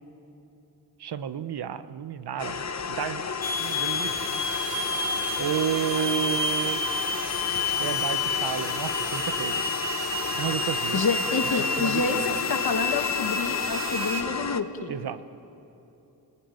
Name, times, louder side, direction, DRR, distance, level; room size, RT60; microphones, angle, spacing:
voice 1, 1.0-3.3 3.6-4.4 5.4-6.8 7.8-9.6 10.4-11.0 11.8-12.4 14.9-15.2, right 9 dB, 80° right, 12 dB, 1.0 m, -31 dB
sound 1, 2.4-14.6, left 5 dB, 45° left, 1.1 m, -32 dB
sound 2, 3.4-14.2, left 2 dB, 25° left, 2.7 m, -30 dB
voice 2, 10.9-14.9, left 4 dB, 70° left, 6 dB, 2.0 m, -28 dB
28.5 x 19.5 x 9.5 m, 2.9 s
cardioid pair, 80°, 38 cm